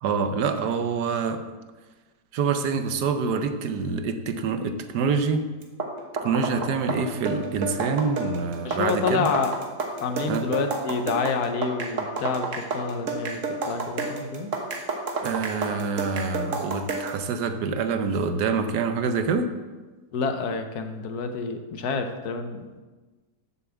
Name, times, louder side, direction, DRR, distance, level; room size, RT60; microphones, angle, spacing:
voice 1, 0.0-1.4 2.3-5.4 6.2-9.3 10.3-10.5 15.2-19.5, right 5 dB, 70° right, 8 dB, 1.3 m, -26 dB
sound 1, 5.6-17.2, right 3 dB, 50° right, 1.4 m, -30 dB
voice 2, 8.6-9.5 10.0-14.5 20.1-22.7, left 5 dB, 65° left, 7 dB, 1.2 m, -28 dB
7.0 x 7.0 x 7.1 m, 1.3 s
omnidirectional pair, 1.9 m